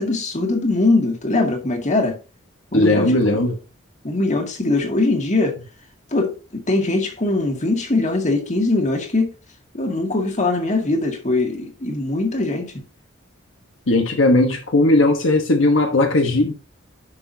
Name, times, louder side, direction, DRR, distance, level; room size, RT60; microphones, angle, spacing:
voice 1, 0.0-2.2 2.7-3.4 4.0-5.6 6.1-9.3 9.7-12.8, left 2 dB, 40° left, 2.0 m, -21 dB
voice 2, 2.7-3.6 13.9-16.5, left 2 dB, 70° left, 1.2 m, -17 dB
10.5 x 6.1 x 2.8 m
head